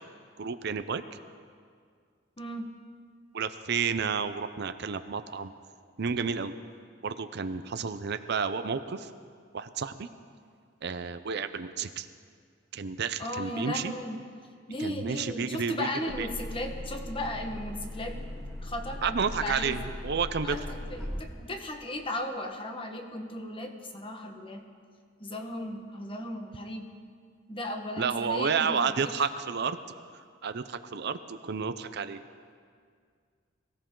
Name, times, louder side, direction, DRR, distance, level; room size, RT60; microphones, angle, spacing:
voice 1, 0.4-1.2 3.3-5.5 6.0-6.5 7.0-9.1 9.5-10.1 10.8-12.1 12.7-13.9 14.8-15.9 16.2-16.3 19.0-20.6 28.0-29.8 30.4-32.2, right 5 dB, 60° right, 11 dB, 0.6 m, -31 dB
voice 2, 2.4-2.7 13.2-14.2 14.7-18.2 18.6-19.2 19.4-19.8 20.4-24.7 25.2-26.9 27.5-28.9, left 1 dB, 30° left, 3 dB, 1.3 m, -36 dB
sound 1, 16.1-21.2, left 1 dB, ahead, 2.7 m, -39 dB
22.0 x 16.0 x 3.9 m, 2.1 s
head